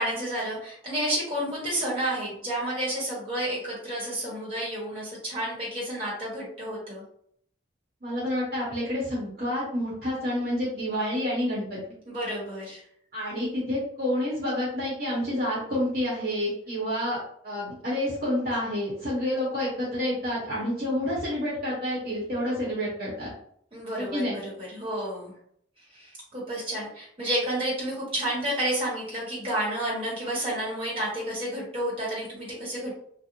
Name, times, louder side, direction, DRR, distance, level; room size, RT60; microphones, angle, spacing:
voice 1, 0.0-7.0 12.0-12.8 23.7-25.3 25.9-33.0, right 1 dB, 30° right, -6 dB, 1.1 m, -30 dB
voice 2, 8.0-11.8 13.1-17.2 17.4-23.3 24.0-24.4, left 1 dB, 50° right, -7 dB, 0.9 m, -29 dB
2.5 x 2.0 x 2.8 m, 0.65 s
head